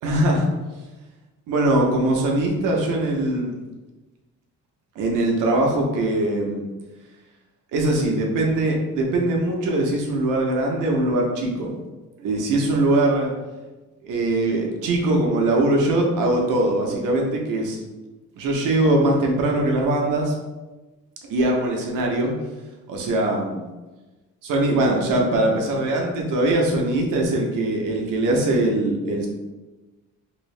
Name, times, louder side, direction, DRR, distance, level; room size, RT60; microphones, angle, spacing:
voice 1, 0.0-0.5 1.5-3.5 5.0-6.7 7.7-11.7 12.2-13.3 14.0-17.8 18.4-20.4 21.3-22.3 22.9-23.6 24.4-29.3, right 1 dB, 75° right, 0 dB, 0.9 m, -21 dB
3.2 x 2.7 x 3.2 m, 1.2 s
cardioid pair, 125°, 32 cm